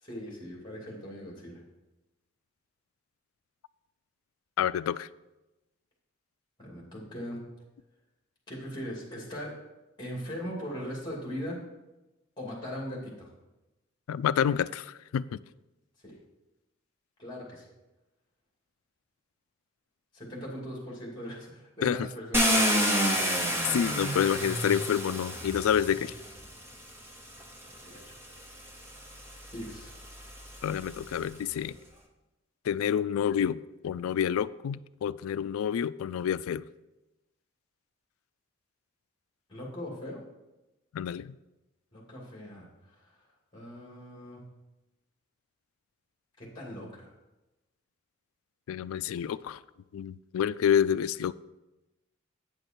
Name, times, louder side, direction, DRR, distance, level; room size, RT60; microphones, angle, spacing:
voice 1, 0.0-1.6 6.6-7.4 8.5-9.5 10.0-11.6 12.4-13.3 16.0-16.2 17.2-17.6 20.1-23.1 27.8-28.1 29.5-29.9 39.5-40.2 41.9-43.0 43.5-44.4 46.4-47.1, equal, 20° left, -2 dB, 2.5 m, -40 dB
voice 2, 4.6-5.1 14.1-15.4 21.8-22.0 23.7-26.1 30.6-31.8 32.7-36.6 40.9-41.3 48.7-49.6 49.9-51.3, left 8 dB, 85° left, 17 dB, 0.3 m, -28 dB
Car, 22.3-26.4 27.4-27.5 28.0-31.3, equal, 10° right, 0.9 m, -30 dB
9.0 x 6.5 x 4.4 m, 1.0 s
head